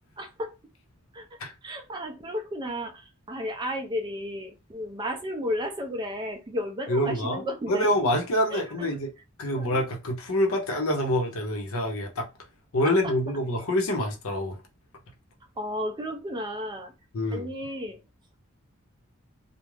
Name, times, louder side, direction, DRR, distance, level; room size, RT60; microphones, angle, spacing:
voice 1, 0.2-0.5 1.1-1.3 1.6-7.9 8.5-8.9 9.5-9.8 12.8-13.1 13.5-13.7 15.6-16.9 17.3-18.0, equal, 20° right, 0.4 m, -33 dB
voice 2, 6.9-7.4 7.7-9.1 9.4-12.3 12.7-14.6 17.1-17.5, left 1 dB, 75° left, 0.7 m, -26 dB
2.4 x 2.0 x 3.1 m
head